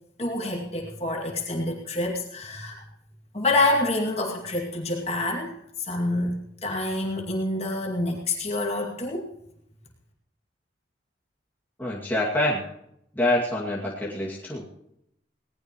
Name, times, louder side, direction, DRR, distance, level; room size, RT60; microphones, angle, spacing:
voice 1, 0.2-2.8 3.3-5.5 5.8-9.3, left 2 dB, 35° left, 0 dB, 2.3 m, -27 dB
voice 2, 11.8-12.6 13.1-14.7, left 1 dB, 10° left, -5 dB, 2.2 m, -26 dB
19.5 x 18.5 x 3.1 m, 0.77 s
head